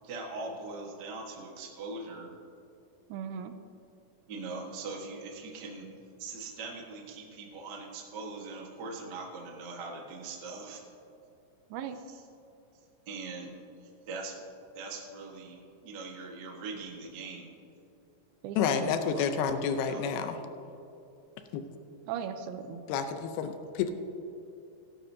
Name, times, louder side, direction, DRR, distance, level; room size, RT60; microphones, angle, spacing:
voice 1, 0.0-2.3 4.3-5.9 6.2-10.8 12.1-12.2 13.1-13.5 14.1-14.4 14.7-17.5 19.1-19.2 19.8-20.0, right 3 dB, 60° right, -1 dB, 1.1 m, -41 dB
voice 2, 3.1-3.5 11.7-12.0 18.4-19.0 22.1-22.8, right 8 dB, 90° right, 9 dB, 2.5 m, -37 dB
voice 3, 18.6-20.4 21.5-21.6 22.9-23.9, left 7 dB, 90° left, 8 dB, 2.6 m, -29 dB
17.0 x 12.0 x 2.7 m, 2.9 s
omnidirectional pair, 4.3 m